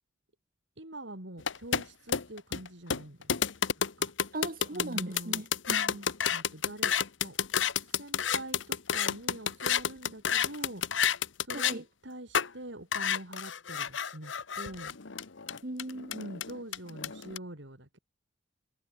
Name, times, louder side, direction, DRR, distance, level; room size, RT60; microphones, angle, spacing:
voice 1, 0.8-3.5 3.8-4.1 4.7-5.4 6.3-6.9 7.2-7.4 8.0-10.9 11.4-15.0 16.1-18.0, right 1 dB, 70° right, 4.8 m, -44 dB
sound 1, 1.4-11.8 12.3-12.5 12.9-17.4, left 8 dB, 85° left, 1.2 m, -30 dB
voice 2, 4.3-6.1 11.5-11.8 15.6-16.2, right 1 dB, 50° right, 1.9 m, -38 dB
head